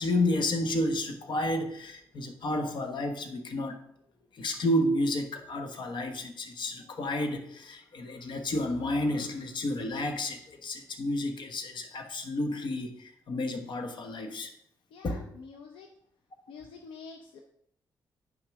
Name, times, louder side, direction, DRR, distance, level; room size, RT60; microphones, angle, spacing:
voice 1, 0.0-3.8 4.3-14.5 15.0-15.3, left 1 dB, 60° left, 6 dB, 1.3 m, -31 dB
voice 2, 14.9-15.9 16.5-17.4, left 5 dB, 85° left, 3 dB, 0.7 m, -47 dB
9.2 x 5.8 x 3.6 m, 0.72 s
supercardioid pair, 50°, 9 cm